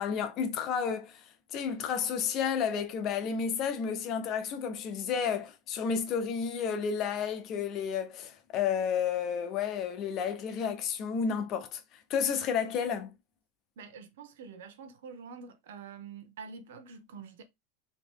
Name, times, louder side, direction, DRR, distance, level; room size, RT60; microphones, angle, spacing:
voice 1, 0.0-13.1, left 7 dB, 40° left, 0.7 m, -31 dB
voice 2, 13.8-17.4, right 5 dB, 80° right, 0.8 m, -46 dB
3.2 x 2.9 x 3.5 m
supercardioid pair, 140°, 0 cm